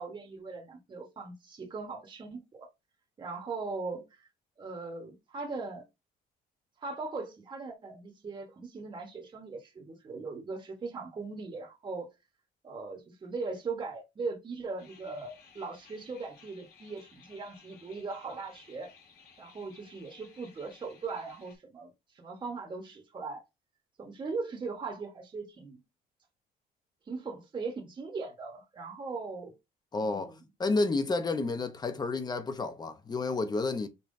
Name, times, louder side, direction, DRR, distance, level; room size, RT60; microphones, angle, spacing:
voice 1, 0.0-2.7 3.2-4.3 4.6-5.8 6.8-12.1 12.6-18.9 19.4-23.4 24.0-25.8 27.1-29.5 30.0-30.4, right 4 dB, 30° right, 1.2 m, -39 dB
sound 1, 14.8-21.6, left 5 dB, 75° left, 2.0 m, -58 dB
voice 2, 29.9-30.3 30.6-33.9, left 3 dB, 25° left, 0.8 m, -30 dB
5.4 x 2.9 x 2.6 m
cardioid pair, 110°, 17 cm